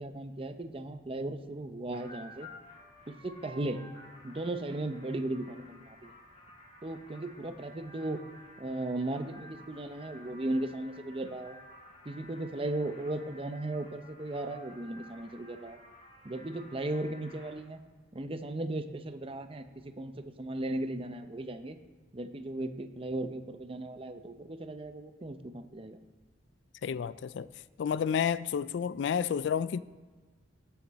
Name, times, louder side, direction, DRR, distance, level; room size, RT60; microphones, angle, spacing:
voice 1, 0.0-2.5 3.1-3.8 4.2-6.1 6.8-8.2 8.6-11.6 12.0-15.8 16.2-17.8 18.1-20.1 20.4-21.8 22.1-26.0, right 2 dB, 30° right, 0.6 m, -36 dB
sound 1, 1.9-17.5, left 1 dB, 35° left, 2.5 m, -53 dB
voice 2, 26.8-27.5 27.8-29.8, left 7 dB, 60° left, 0.3 m, -30 dB
17.5 x 5.9 x 4.1 m
head